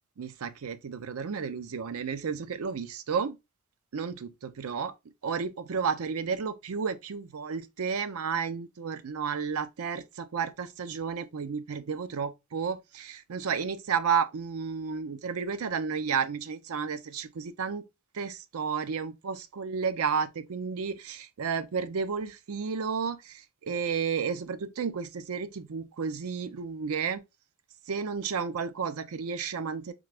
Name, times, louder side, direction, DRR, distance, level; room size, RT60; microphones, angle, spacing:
voice 1, 0.2-3.4 3.9-4.9 5.2-17.8 18.1-27.2 27.9-29.9, right 6 dB, 85° right, 0.5 m, -32 dB
3.7 x 3.3 x 3.3 m
head